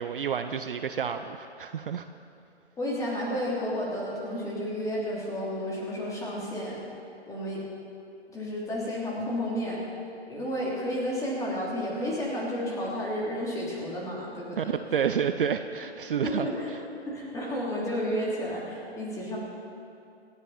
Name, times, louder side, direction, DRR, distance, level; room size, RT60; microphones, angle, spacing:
voice 1, 0.0-2.0 14.6-16.5, right 7 dB, 50° right, 9 dB, 0.6 m, -29 dB
voice 2, 2.8-6.8 7.3-7.6 8.3-9.8 10.3-14.7 16.2-16.7 17.1-19.4, equal, 10° left, -5 dB, 3.3 m, -31 dB
27.0 x 10.0 x 4.3 m, 2.6 s
figure-of-eight pair, 130°, 34 cm